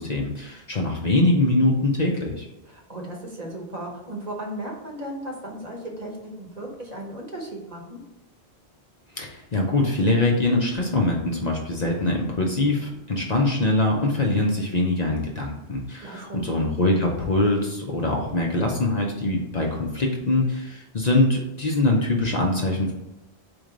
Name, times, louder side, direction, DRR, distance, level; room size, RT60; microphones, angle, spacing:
voice 1, 0.0-2.5 9.1-22.9, left 2 dB, 45° left, 0 dB, 0.7 m, -23 dB
voice 2, 2.7-8.0 16.0-16.5, right 1 dB, 40° right, 0 dB, 0.9 m, -36 dB
4.4 x 3.2 x 3.8 m, 1.0 s
omnidirectional pair, 1.1 m